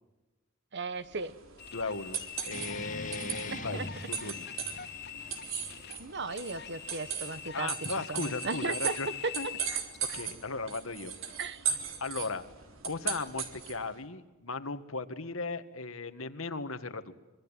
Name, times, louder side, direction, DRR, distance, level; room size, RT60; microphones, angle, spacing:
voice 1, 0.7-1.3 3.5-3.9 6.0-7.7 8.1-9.0 9.2-9.5 11.4-11.7, right 4 dB, 55° right, 13 dB, 1.5 m, -36 dB
sound 1, 1.1-13.9, right 8 dB, 70° right, 3.8 m, -38 dB
sound 2, 1.6-10.3, left 9 dB, 55° left, 2.3 m, -44 dB
voice 2, 1.7-3.8 4.1-4.5 7.5-9.5 10.1-11.1 11.7-12.4 12.8-17.1, left 3 dB, 80° left, 9 dB, 2.0 m, -37 dB
sound 3, 2.5-7.6, left 3 dB, 40° left, 2.2 m, -44 dB
25.5 x 24.5 x 9.2 m, 1.1 s
head